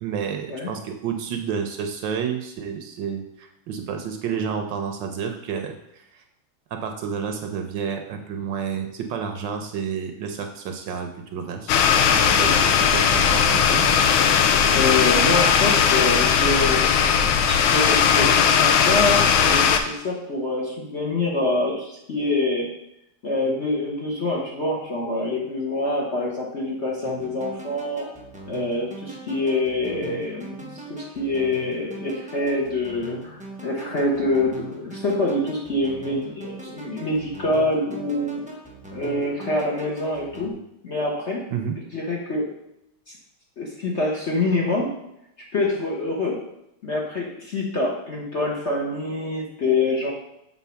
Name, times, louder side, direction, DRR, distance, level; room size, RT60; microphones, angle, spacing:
voice 1, 0.0-6.2 6.7-11.7 12.1-14.1 41.5-41.7, right 7 dB, 70° right, 5 dB, 1.3 m, -30 dB
sound 1, 11.7-19.8, left 7 dB, 80° left, 1.5 m, -18 dB
voice 2, 12.3-12.6 14.7-16.9 17.4-22.7 23.2-28.1 28.5-38.4 38.9-40.5 40.8-41.4 41.9-42.5 43.1-43.2 43.6-44.9 45.5-46.4 46.8-50.1, left 2 dB, 40° left, -3 dB, 1.1 m, -25 dB
sound 2, 27.0-40.5, right 3 dB, 10° right, 0.4 m, -41 dB
7.2 x 3.8 x 5.7 m, 0.81 s
omnidirectional pair, 2.2 m